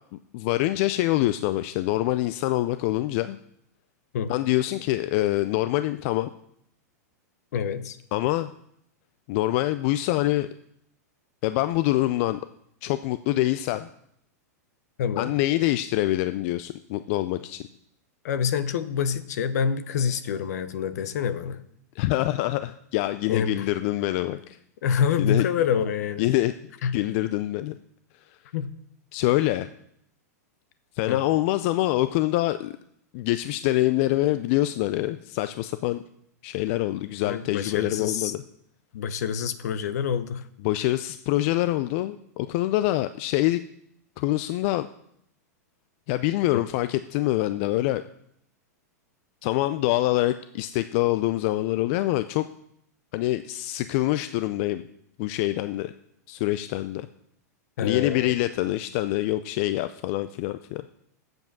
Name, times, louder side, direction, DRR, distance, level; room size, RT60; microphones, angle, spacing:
voice 1, 0.3-3.4 4.3-6.3 8.1-8.5 9.3-10.5 11.4-12.4 12.8-13.9 15.2-17.7 22.0-24.6 25.2-25.5 26.2-26.5 26.9-27.8 28.3-28.4 29.1-29.7 31.0-32.8 33.1-36.0 36.4-38.4 40.6-43.6 44.2-44.9 46.1-48.0 49.4-52.4 53.1-54.8 55.2-55.9 56.3-57.1 57.8-60.9, left 16 dB, 50° left, 12 dB, 0.4 m, -25 dB
voice 2, 7.5-8.0 15.0-15.3 18.2-21.6 23.3-23.7 24.8-26.3 26.8-26.9 28.5-28.7 31.1-31.2 37.2-38.3 38.9-40.4 57.8-58.3, left 7 dB, 70° left, 13 dB, 0.8 m, -26 dB
7.8 x 7.1 x 6.0 m, 0.71 s
hypercardioid pair, 120°, 9 cm